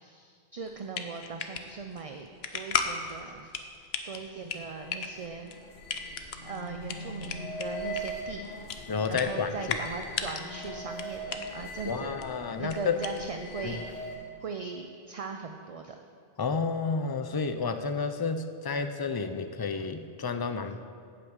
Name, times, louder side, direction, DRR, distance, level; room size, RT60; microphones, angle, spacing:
voice 1, 0.0-3.6 4.0-5.5 6.4-8.5 9.1-12.1 12.6-16.0, right 4 dB, 40° right, 5 dB, 0.6 m, -39 dB
sound 1, 0.6-13.6, left 6 dB, 85° left, 1.0 m, -37 dB
sound 2, 4.6-14.3, equal, 65° left, 2.5 m, -41 dB
voice 2, 8.9-9.8 11.8-13.0 13.6-13.8 16.4-20.8, left 5 dB, 30° left, 9 dB, 0.5 m, -31 dB
9.0 x 7.8 x 8.0 m, 2.2 s
omnidirectional pair, 1.0 m